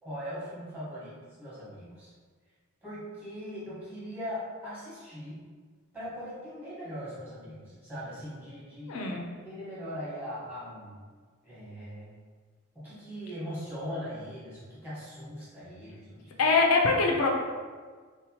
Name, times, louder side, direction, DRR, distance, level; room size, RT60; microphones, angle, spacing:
voice 1, 0.0-2.1 2.8-5.4 5.9-9.0 9.4-11.0 11.4-12.1 12.7-16.4, equal, 10° right, -11 dB, 1.0 m, -40 dB
voice 2, 8.9-9.3 16.4-17.3, left 4 dB, 75° left, 0 dB, 0.4 m, -23 dB
2.8 x 2.0 x 2.8 m, 1.5 s
head